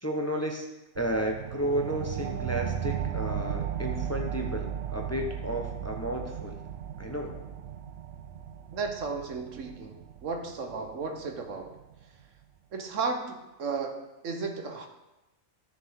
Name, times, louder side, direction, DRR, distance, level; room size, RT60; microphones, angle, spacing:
voice 1, 0.0-0.7 1.0-6.6 7.0-7.3, right 1 dB, 15° left, 1 dB, 0.9 m, -32 dB
sound 1, 1.0-12.0, right 9 dB, 65° right, 0.8 m, -36 dB
voice 2, 8.7-11.8 12.7-14.9, right 4 dB, 80° right, 5 dB, 1.4 m, -34 dB
14.0 x 6.6 x 3.7 m, 1.0 s
omnidirectional pair, 1.3 m